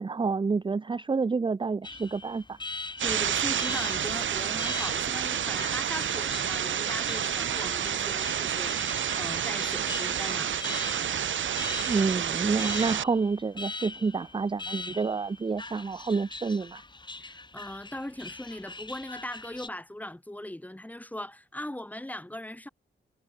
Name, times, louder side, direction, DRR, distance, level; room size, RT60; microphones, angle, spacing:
voice 1, 0.0-2.6 11.9-16.8, right 4 dB, 25° right, 0.6 m, -28 dB
Alarm, 1.8-19.7, left 3 dB, 25° left, 3.7 m, -42 dB
voice 2, 3.0-10.8 17.2-22.7, left 1 dB, 10° left, 4.8 m, -39 dB
sound 1, 3.0-13.0, right 9 dB, 90° right, 1.3 m, -29 dB
wide cardioid pair, 120°, 19 cm